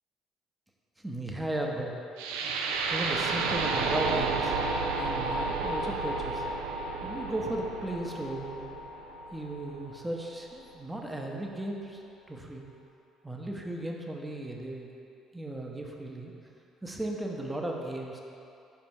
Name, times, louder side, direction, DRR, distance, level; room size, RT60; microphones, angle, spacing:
voice 1, 1.0-1.9 2.9-4.5 4.9-6.4 7.0-8.7 9.3-12.6 13.2-14.9 15.3-16.3 16.8-18.2, right 1 dB, 15° right, 0 dB, 0.8 m, -36 dB
sound 1, 2.2-10.2, right 3 dB, 70° right, 0.4 m, -31 dB
5.2 x 4.7 x 5.2 m, 2.6 s
figure-of-eight pair, 50°, 0 cm